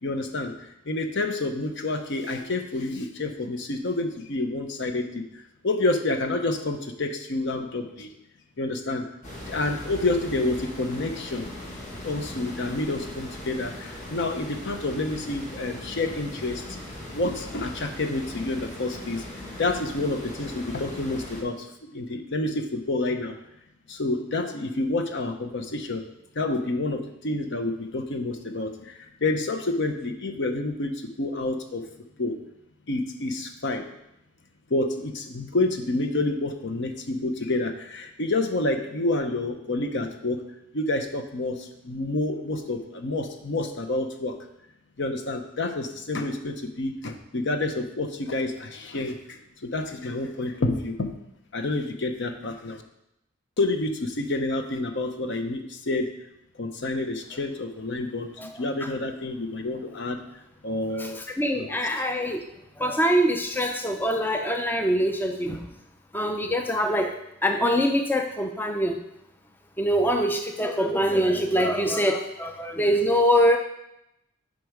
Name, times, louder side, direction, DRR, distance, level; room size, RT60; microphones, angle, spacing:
voice 1, 0.0-0.5 0.9-5.2 5.6-8.1 8.6-9.1 9.5-11.5 12.0-16.6 17.1-19.2 19.6-21.6 21.9-23.3 23.9-26.0 26.4-28.9 29.2-31.8 32.2-32.4 32.9-33.8 34.7-40.4 40.7-41.6 41.8-44.3 45.0-51.1 51.5-52.8 53.6-56.1 56.6-58.3 58.6-60.2 60.6-61.2 61.6-61.7, left 2 dB, 60° left, 6 dB, 0.8 m, -28 dB
sound 1, 9.2-21.4, left 1 dB, 35° left, 1.6 m, -39 dB
voice 2, 61.0-62.4 62.8-65.7 66.1-67.1 67.4-69.0 69.8-73.6, equal, 10° left, 5 dB, 0.4 m, -24 dB
8.5 x 5.4 x 4.7 m, 0.84 s
head